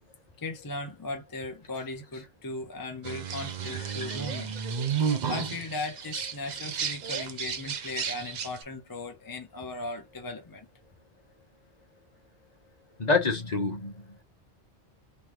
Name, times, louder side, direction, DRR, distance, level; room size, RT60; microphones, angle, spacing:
voice 1, 0.4-4.5 5.3-10.7, left 2 dB, 25° left, 0.5 m, -37 dB
sound 1, 3.0-8.6, right 7 dB, 50° right, 0.6 m, -32 dB
voice 2, 13.0-14.2, left 4 dB, 40° left, 1.1 m, -27 dB
3.6 x 3.0 x 3.0 m
omnidirectional pair, 1.1 m